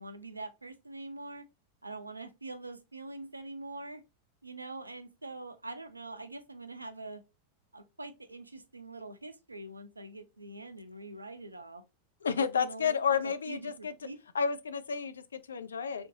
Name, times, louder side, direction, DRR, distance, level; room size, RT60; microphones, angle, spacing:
voice 1, 0.0-1.4 1.8-4.0 4.4-7.2 7.7-11.8 12.4-13.2 13.5-14.2, right 2 dB, 80° right, 0.4 m, -44 dB
voice 2, 12.2-13.9 14.3-16.1, left 6 dB, 70° left, 0.3 m, -31 dB
3.5 x 2.6 x 2.6 m
figure-of-eight pair, 90°, 0 cm